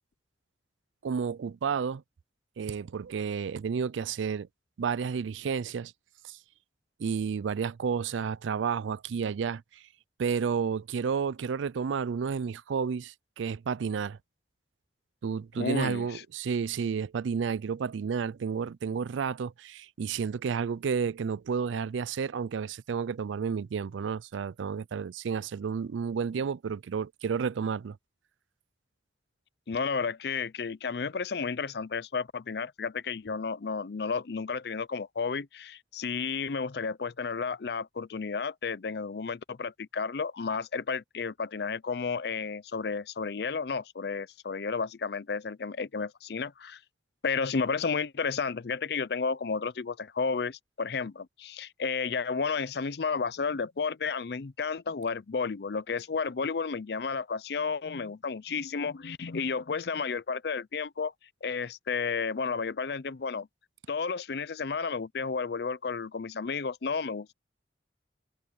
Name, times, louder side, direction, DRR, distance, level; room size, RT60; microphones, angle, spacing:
voice 1, 1.0-2.0 2.6-4.5 4.8-5.9 6.3-6.4 7.0-9.6 10.2-14.2 15.2-28.0, right 6 dB, 90° right, 0.4 m, -31 dB
voice 2, 15.6-16.2 29.7-46.8 47.2-61.1 61.4-63.5 63.9-67.3, left 5 dB, 60° left, 0.5 m, -32 dB
head